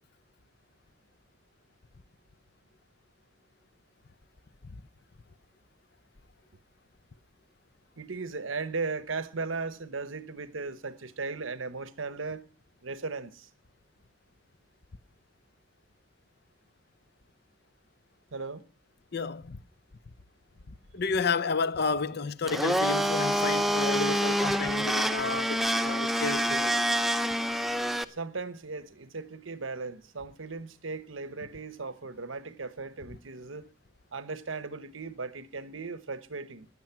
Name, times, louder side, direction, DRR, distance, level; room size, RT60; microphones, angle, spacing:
voice 1, 8.0-12.4 12.8-13.5 18.3-18.6 28.1-33.7 34.1-36.7, right 4 dB, 85° right, 1.1 m, -37 dB
voice 2, 19.1-19.6 20.9-26.7, left 4 dB, 55° left, 0.7 m, -31 dB
Domestic sounds home sounds, 22.5-28.0, equal, ahead, 0.6 m, -27 dB
15.5 x 10.5 x 5.8 m
head